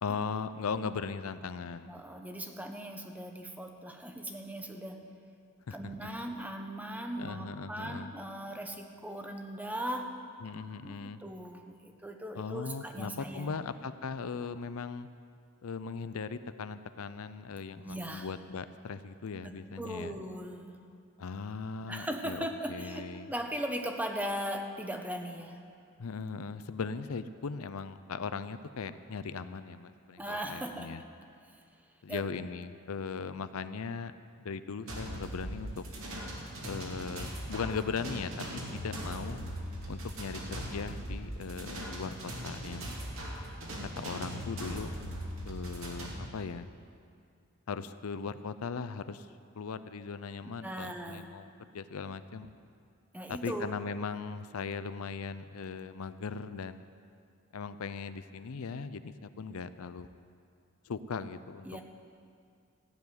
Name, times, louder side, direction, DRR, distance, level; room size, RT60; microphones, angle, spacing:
voice 1, 0.0-1.9 5.7-5.8 6.0-6.1 7.2-8.1 10.4-11.2 12.3-15.1 15.6-20.2 21.2-23.3 26.0-31.0 32.0-34.1 34.4-35.9 36.6-38.3 38.7-39.4 39.9-42.9 44.0-44.9 45.4-46.7 47.7-49.3 49.6-52.5 53.3-56.9 57.5-60.1 60.8-61.8, left 5 dB, 90° left, 12 dB, 0.5 m, -38 dB
voice 2, 1.9-5.0 5.7-10.1 10.8-13.6 17.8-18.3 19.4-20.8 21.9-25.6 30.2-31.0 31.5-31.6 32.1-32.2 50.6-51.3 53.1-53.7 61.6-61.8, equal, 5° right, 4 dB, 0.9 m, -38 dB
sound 1, 34.9-46.2, equal, 70° right, 2.6 m, -40 dB
15.0 x 7.1 x 9.6 m, 2.3 s
head